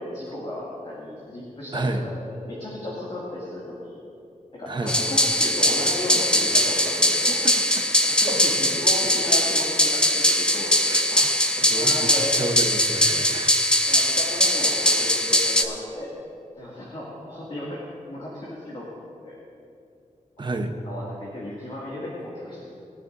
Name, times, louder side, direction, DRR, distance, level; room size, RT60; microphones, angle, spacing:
voice 1, 0.0-4.0 4.5-7.5 8.0-11.2 11.8-12.3 13.9-16.1 16.6-17.8 18.1-18.9 19.2-19.4 20.4-20.5 20.8-22.8, left 1 dB, 40° left, -7 dB, 2.3 m, -34 dB
voice 2, 1.7-2.0 4.7-4.9 6.8-6.9 7.2-7.9 8.3-8.4 10.9-11.0 11.6-13.6 20.4-20.7, right 2 dB, 35° right, 5 dB, 0.9 m, -30 dB
sound 1, 4.9-15.6, equal, 5° left, 0.7 m, -21 dB
21.0 x 9.9 x 2.7 m, 2.5 s
wide cardioid pair, 150°, 14 cm